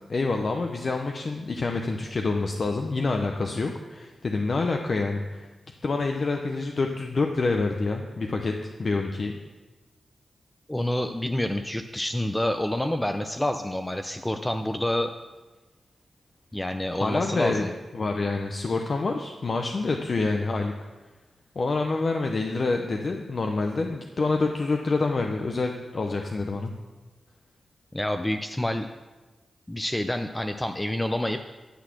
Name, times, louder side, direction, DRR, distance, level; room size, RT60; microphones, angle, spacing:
voice 1, 0.1-5.5 5.8-9.3 17.0-20.7 21.5-26.7, left 3 dB, 55° left, 3 dB, 0.8 m, -27 dB
voice 2, 10.7-15.1 16.5-17.7 27.9-28.9 29.7-31.4, left 1 dB, 15° left, 6 dB, 0.5 m, -28 dB
11.5 x 4.1 x 7.6 m, 1.2 s
cardioid pair, 60°, 0 cm